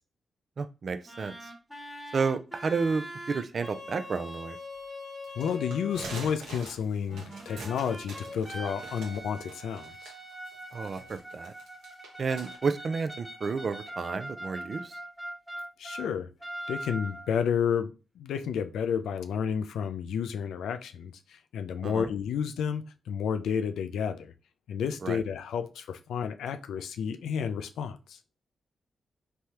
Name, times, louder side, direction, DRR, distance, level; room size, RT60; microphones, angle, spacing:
voice 1, 0.6-1.5 2.1-4.6 10.7-11.5 12.2-15.0 21.8-22.1 25.0-25.2, right 4 dB, 55° right, 0.4 m, -31 dB
sound 1, 1.1-6.2 7.1-16.1 16.4-17.5, equal, 5° left, 1.1 m, -42 dB
sound 2, 5.2-12.6, right 3 dB, 80° right, 0.8 m, -45 dB
voice 2, 5.4-10.1 15.8-16.3 16.7-24.3 24.7-28.2, left 7 dB, 80° left, 0.3 m, -31 dB
3.3 x 2.2 x 2.8 m
supercardioid pair, 45°, 0 cm